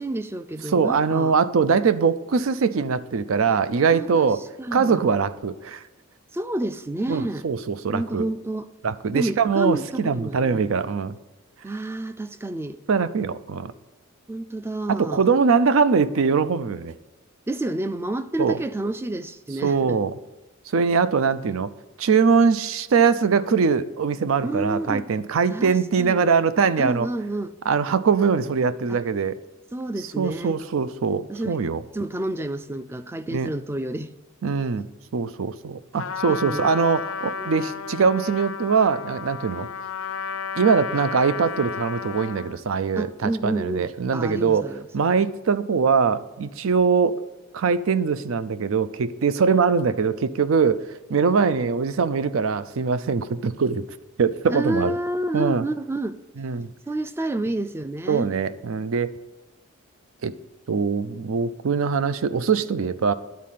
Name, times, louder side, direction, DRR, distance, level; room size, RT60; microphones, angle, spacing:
voice 1, 0.0-1.3 3.9-4.3 4.6-5.0 6.3-7.4 7.9-8.7 9.1-10.7 11.6-12.8 14.3-15.3 17.5-20.0 24.4-25.1 25.5-26.3 26.8-27.5 28.9-29.0 29.7-30.6 31.3-31.6 31.9-34.1 36.3-36.7 37.4-37.6 43.0-44.9 54.5-56.2 56.9-58.3, right 1 dB, 10° right, 0.3 m, -29 dB
voice 2, 0.7-4.4 4.7-5.8 7.1-8.2 8.8-11.2 12.9-13.7 14.9-16.9 18.4-18.6 19.6-20.1 20.7-21.7 22.0-27.1 27.7-29.4 30.2-31.8 33.3-33.5 34.4-34.8 35.1-39.7 40.6-47.2 47.5-53.8 54.2-55.0 55.3-55.6 56.4-56.7 58.1-59.1 60.2-60.3 60.7-63.1, right 5 dB, 75° right, 0.5 m, -22 dB
Trumpet, 36.0-42.6, left 6 dB, 80° left, 0.5 m, -33 dB
10.5 x 4.2 x 7.4 m
head